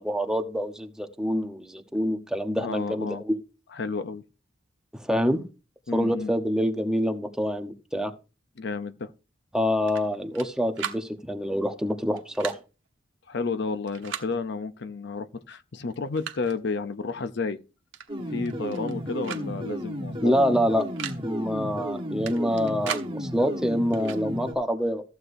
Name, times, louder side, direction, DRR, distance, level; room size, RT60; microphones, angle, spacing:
voice 1, 0.0-3.4 5.0-5.4 5.9-8.1 9.5-12.6 20.2-20.9 21.2-25.0, equal, 5° right, 1.0 m, -26 dB
voice 2, 2.6-3.2 3.7-4.2 5.9-6.3 8.6-9.1 13.3-17.6 18.3-20.4, left 4 dB, 65° left, 0.6 m, -31 dB
sound 1, 9.9-10.5 10.7-11.0 12.2-12.6 13.9-14.3 15.4-15.5 15.9-16.6 17.9-18.1 18.4-18.9 19.2-19.5 19.7-19.8 20.8-21.2 22.3-23.1 23.9-24.2, right 7 dB, 75° right, 1.3 m, -36 dB
sound 2, 18.1-24.5, equal, 30° right, 1.3 m, -33 dB
14.5 x 8.1 x 2.6 m
head